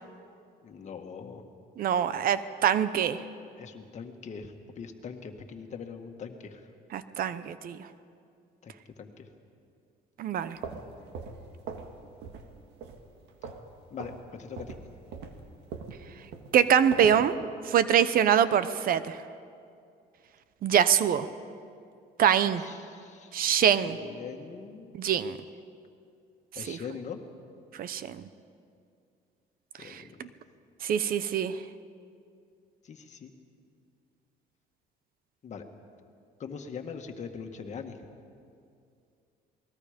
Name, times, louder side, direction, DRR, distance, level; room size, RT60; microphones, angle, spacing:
voice 1, 0.6-1.4 3.6-6.7 8.6-9.3 13.9-14.8 22.5-23.3 23.9-24.9 26.6-27.2 29.8-30.3 32.8-33.3 35.4-35.6 36.4-38.0, left 6 dB, 45° left, 5 dB, 1.9 m, -42 dB
voice 2, 1.8-3.2 6.9-7.8 10.2-10.6 16.5-17.4 17.7-19.2 20.6-21.3 22.2-22.6 23.3-24.0 24.9-25.4 26.7-26.8 27.8-28.2 30.8-31.6, right 9 dB, 60° right, 14 dB, 0.8 m, -24 dB
sound 1, 10.4-12.0 12.2-12.5 12.8-13.7 14.0-14.2 14.6-17.3, right 5 dB, 85° right, 1.8 m, -41 dB
28.0 x 20.0 x 5.2 m, 2.4 s
cardioid pair, 110°, 17 cm